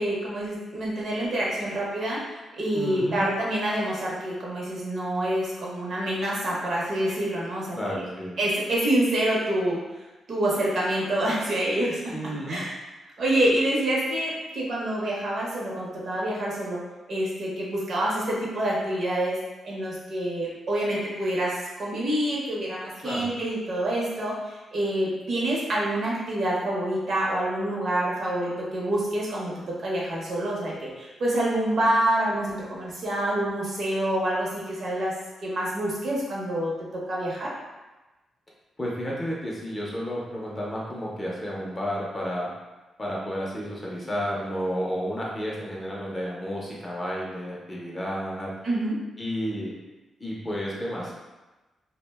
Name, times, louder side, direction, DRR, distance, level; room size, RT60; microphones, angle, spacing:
voice 1, 0.0-2.2 2.6-8.0 8.4-9.8 10.3-12.7 13.2-16.8 17.1-19.4 19.6-29.5 29.8-35.1 35.4-36.7 37.1-37.5 48.6-48.9, right 1 dB, 50° right, -5 dB, 0.7 m, -27 dB
voice 2, 2.7-3.3 7.7-8.4 12.1-12.6 23.0-23.3 38.8-42.5 43.0-48.5 49.2-49.7 50.2-51.2, equal, 15° left, -4 dB, 0.5 m, -31 dB
2.4 x 2.1 x 3.3 m, 1.1 s
wide cardioid pair, 165°, 0 cm